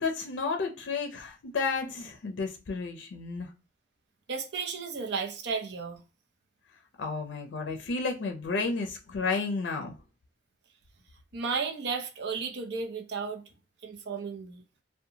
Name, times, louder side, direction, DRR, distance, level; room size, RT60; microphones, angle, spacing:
voice 1, 0.0-3.5 7.0-10.0, left 4 dB, 85° left, 0.5 m, -32 dB
voice 2, 4.3-6.0 11.3-13.4 13.8-14.6, right 5 dB, 65° right, 0.5 m, -33 dB
2.7 x 2.2 x 2.6 m
head